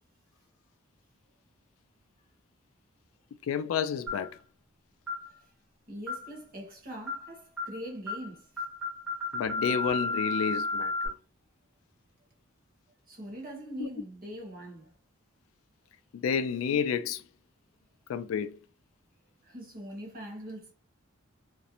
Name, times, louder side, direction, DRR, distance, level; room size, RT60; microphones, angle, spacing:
voice 1, 3.4-4.4 9.3-11.1 13.8-13.9 16.1-17.2 18.1-18.6, left 7 dB, 75° left, 0.3 m, -30 dB
sound 1, 4.1-4.3 5.1-5.3 6.1-6.3 7.1-7.3 7.6-7.8 8.1-8.3 8.6-11.1, left 3 dB, 5° right, 0.8 m, -33 dB
voice 2, 5.9-8.6 13.1-14.9 19.4-20.7, equal, 45° right, 0.9 m, -42 dB
2.5 x 2.0 x 2.8 m
head